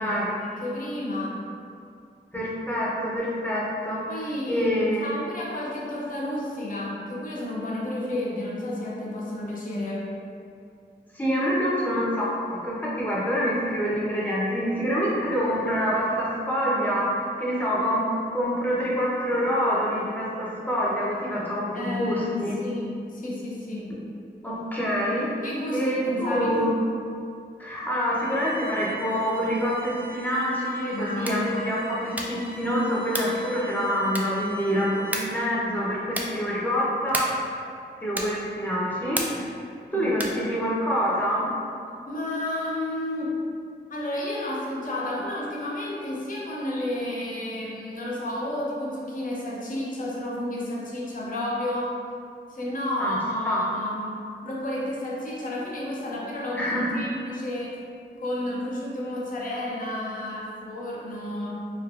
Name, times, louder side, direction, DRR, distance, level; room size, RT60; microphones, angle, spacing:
voice 1, 0.0-1.4 4.1-10.1 21.7-24.0 25.4-26.8 30.9-31.5 32.0-32.1 39.9-40.1 42.1-43.4 43.9-52.0 52.5-57.8 58.2-61.6, left 1 dB, 45° left, -5 dB, 0.6 m, -31 dB
voice 2, 2.3-4.0 4.5-5.1 11.1-18.0 18.3-22.5 24.4-25.4 25.7-26.7 27.6-37.3 38.0-39.5 39.9-41.5 53.0-53.2 53.4-53.6 56.5-56.9, equal, 10° left, -7 dB, 0.8 m, -26 dB
Bowed string instrument, 28.2-35.4, right 2 dB, 55° right, 0.6 m, -44 dB
sound 1, 31.1-31.5 32.1-32.5 33.1-33.4 34.1-34.5 35.1-35.4 36.1-36.4 37.1-37.5 38.1-38.5 39.1-39.5 40.1-40.5, right 1 dB, 10° right, 0.3 m, -32 dB
3.1 x 2.2 x 2.4 m, 2.4 s
cardioid pair, 65°, 19 cm